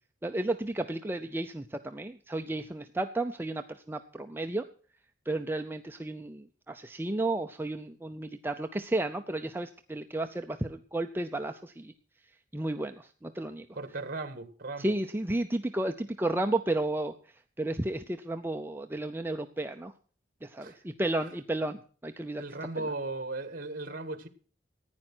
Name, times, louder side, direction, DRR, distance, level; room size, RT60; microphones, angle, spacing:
voice 1, 0.2-4.6 5.3-11.9 12.5-13.7 14.8-17.1 17.6-19.9 20.4-22.4 22.8-22.9, right 2 dB, 10° right, 6 dB, 0.5 m, -33 dB
voice 2, 13.7-14.9 20.6-20.8 22.4-24.3, right 2 dB, 50° right, 11 dB, 1.8 m, -37 dB
15.0 x 9.9 x 6.1 m, 0.43 s
head